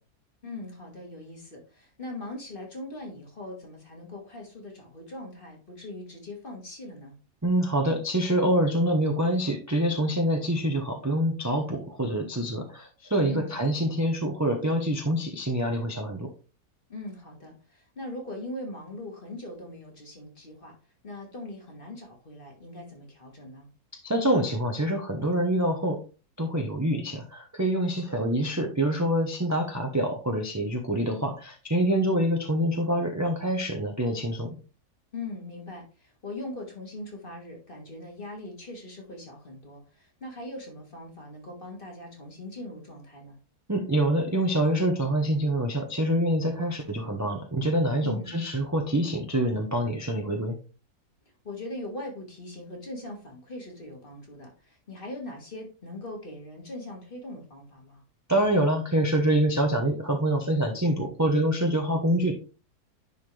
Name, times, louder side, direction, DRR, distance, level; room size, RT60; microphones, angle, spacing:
voice 1, 0.4-7.2 13.2-13.5 16.9-20.7 21.0-23.7 27.9-28.2 35.1-43.4 48.0-48.4 51.4-58.0, left 1 dB, 35° left, 1 dB, 2.0 m, -40 dB
voice 2, 7.4-16.3 24.0-26.0 26.4-34.6 43.7-50.6 58.3-62.3, right 1 dB, 15° right, 2 dB, 0.7 m, -26 dB
10.0 x 4.1 x 3.3 m, 0.34 s
omnidirectional pair, 1.7 m